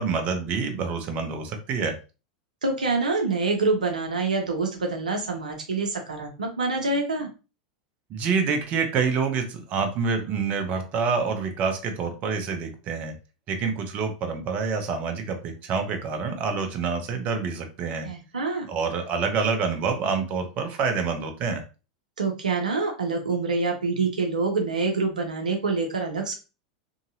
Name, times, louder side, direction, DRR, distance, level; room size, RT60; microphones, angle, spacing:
voice 1, 0.0-2.0 8.1-13.1 13.5-18.1 18.7-21.6, right 5 dB, 40° right, 6 dB, 0.7 m, -27 dB
voice 2, 2.6-7.3 18.0-18.7 22.2-26.3, right 3 dB, 85° right, 3 dB, 0.6 m, -26 dB
2.8 x 2.6 x 2.6 m, 0.31 s
hypercardioid pair, 95°, 4 cm